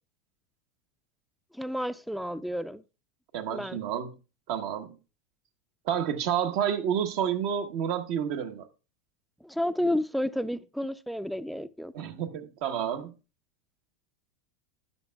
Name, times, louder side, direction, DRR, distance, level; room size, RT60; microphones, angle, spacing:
voice 1, 1.5-2.8 3.5-3.8 9.4-11.9, left 1 dB, ahead, 0.5 m, -31 dB
voice 2, 3.3-4.1 4.5-5.0 5.8-8.7 11.9-13.1, right 9 dB, 60° right, 1.1 m, -29 dB
12.5 x 9.4 x 2.3 m
hypercardioid pair, 100°, 0 cm